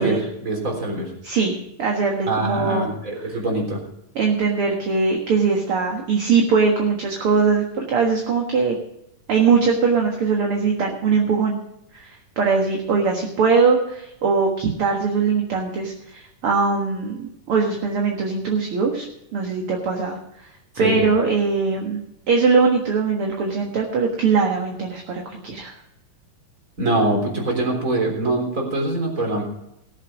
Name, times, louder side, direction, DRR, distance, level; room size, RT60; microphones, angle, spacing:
voice 1, 0.0-1.1 2.3-3.8 20.8-21.0 26.8-29.4, right 2 dB, 25° right, 1 dB, 3.7 m, -23 dB
voice 2, 1.2-2.9 4.2-8.8 9.3-11.6 11.9-19.1 19.3-20.5 20.8-22.0 22.3-25.7, right 5 dB, 50° right, 1 dB, 2.0 m, -21 dB
18.5 x 7.5 x 6.3 m, 0.81 s
omnidirectional pair, 3.9 m